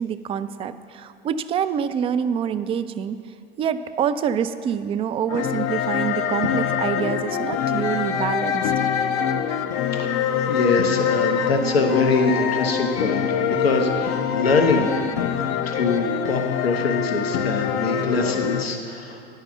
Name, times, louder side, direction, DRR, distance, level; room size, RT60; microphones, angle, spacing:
voice 1, 0.0-3.2 3.6-8.6, right 8 dB, 20° right, 11 dB, 0.3 m, -26 dB
sound 1, 5.3-18.7, left 8 dB, 50° left, 0.6 m, -24 dB
voice 2, 10.5-14.9 15.2-15.4 15.7-19.2, left 3 dB, 85° left, 4 dB, 0.9 m, -23 dB
10.0 x 5.5 x 7.2 m, 2.4 s
hypercardioid pair, 85°, 30 cm